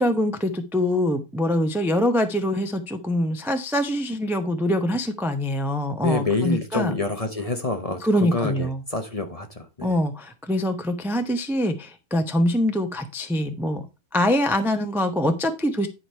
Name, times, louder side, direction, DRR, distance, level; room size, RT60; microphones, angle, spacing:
voice 1, 0.0-6.9 8.0-8.8 9.8-13.9 14.1-15.9, left 1 dB, ahead, 7 dB, 0.5 m, -24 dB
voice 2, 6.0-10.0, left 3 dB, 30° left, 6 dB, 0.8 m, -27 dB
9.8 x 5.0 x 4.4 m, 0.27 s
omnidirectional pair, 1.6 m